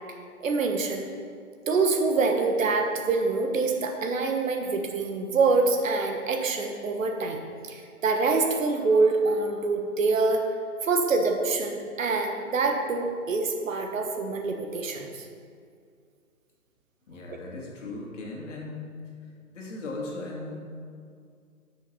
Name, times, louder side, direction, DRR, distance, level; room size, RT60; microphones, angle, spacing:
voice 1, 0.4-1.1 1.7-10.4 10.8-15.3, right 3 dB, 60° right, 4 dB, 1.3 m, -25 dB
voice 2, 17.1-18.9 19.5-20.6, left 2 dB, 55° left, -1 dB, 2.2 m, -37 dB
10.0 x 6.5 x 4.3 m, 2.3 s
figure-of-eight pair, 140°, 45 cm